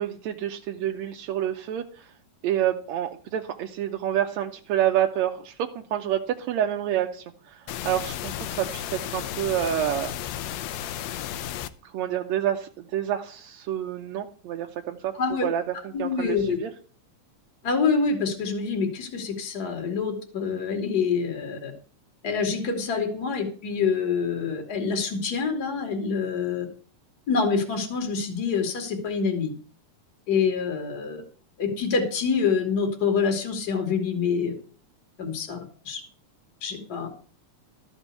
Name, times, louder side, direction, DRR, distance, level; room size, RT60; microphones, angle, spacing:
voice 1, 0.0-2.1 2.4-10.1 11.8-15.1 15.4-16.7, right 11 dB, 75° right, 3 dB, 1.7 m, -28 dB
sound 1, 7.7-11.7, left 11 dB, 80° left, 1.5 m, -33 dB
voice 2, 15.9-16.6 17.6-21.7 22.2-26.7 27.3-29.5 30.3-31.2 31.6-34.5 35.2-35.6 35.8-36.0 36.6-37.1, left 5 dB, 30° left, 3 dB, 2.5 m, -26 dB
13.5 x 5.3 x 8.2 m, 0.43 s
omnidirectional pair, 3.8 m